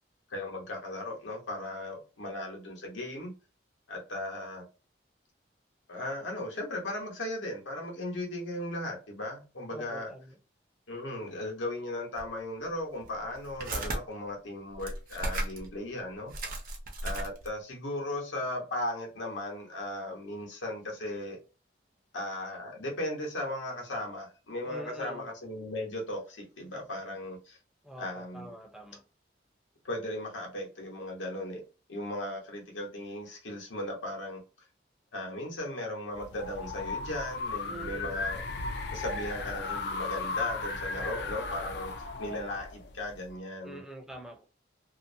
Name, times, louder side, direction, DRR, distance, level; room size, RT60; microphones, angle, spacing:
voice 1, 0.3-3.3 3.9-4.7 5.9-10.1 10.9-16.3 17.0-21.4 22.1-27.6 28.0-28.5 29.8-31.6 31.9-34.4 35.1-38.4 38.9-43.8, left 1 dB, 90° left, 1.0 m, -37 dB
voice 2, 9.7-10.4 24.7-25.3 27.8-29.0 37.7-38.2 40.9-41.4 43.6-44.4, right 1 dB, 5° right, 0.5 m, -45 dB
sound 1, 12.2-12.3 13.0-14.0 14.7-15.7 16.0-16.1 16.3-17.6, right 1 dB, 50° right, 0.6 m, -35 dB
sound 2, 36.1-43.3, left 3 dB, 65° left, 0.4 m, -36 dB
2.7 x 2.1 x 2.6 m
head